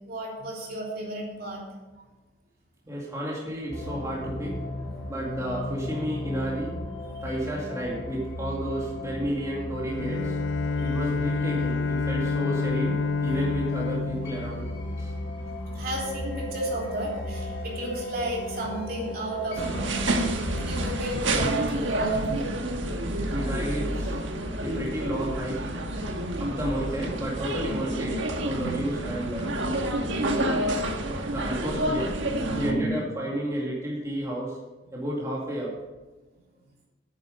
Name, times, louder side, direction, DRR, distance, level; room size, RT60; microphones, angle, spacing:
voice 1, 0.0-1.6 2.0-2.1 7.1-7.2 10.8-11.0 15.7-20.1 20.6-22.5 28.5-28.9 29.9-30.0 30.4-30.5 32.4-32.9, right 1 dB, 50° right, -2 dB, 3.3 m, -32 dB
voice 2, 2.9-4.5 5.1-6.8 7.2-10.4 10.8-14.7 15.0-15.1 20.4-20.6 23.3-24.2 24.6-25.8 26.4-29.5 31.3-32.1 32.6-34.6 34.9-35.8, right 1 dB, 15° right, -5 dB, 2.3 m, -32 dB
sound 1, 3.7-21.1, left 1 dB, 65° left, 3.6 m, -36 dB
Bowed string instrument, 9.8-15.5, left 4 dB, 90° left, 0.7 m, -29 dB
sound 2, 19.6-32.7, right 1 dB, 80° right, 1.5 m, -29 dB
10.5 x 9.3 x 5.3 m, 1.2 s
head